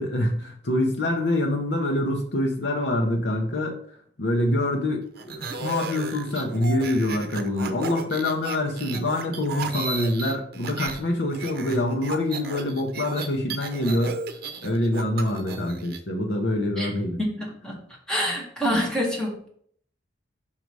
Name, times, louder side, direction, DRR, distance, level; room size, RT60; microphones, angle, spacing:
voice 1, 0.0-14.2 14.6-17.2, left 1 dB, 70° left, 1 dB, 0.9 m, -25 dB
sound 1, 5.2-11.0 11.3-16.0, right 4 dB, 55° right, 0.8 m, -35 dB
voice 2, 18.1-19.5, equal, 5° left, -2 dB, 1.8 m, -26 dB
5.7 x 5.3 x 4.7 m, 0.62 s
head